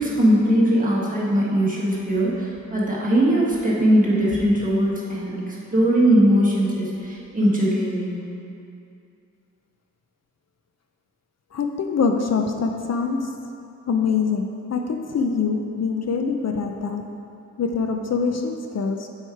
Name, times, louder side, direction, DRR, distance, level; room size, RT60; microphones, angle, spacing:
voice 1, 0.0-8.2, right 1 dB, 25° right, -6 dB, 1.5 m, -20 dB
voice 2, 11.5-13.3 13.9-17.2 17.6-19.1, left 5 dB, 60° left, 4 dB, 0.5 m, -24 dB
7.7 x 4.8 x 4.6 m, 2.6 s
wide cardioid pair, 125°, 30 cm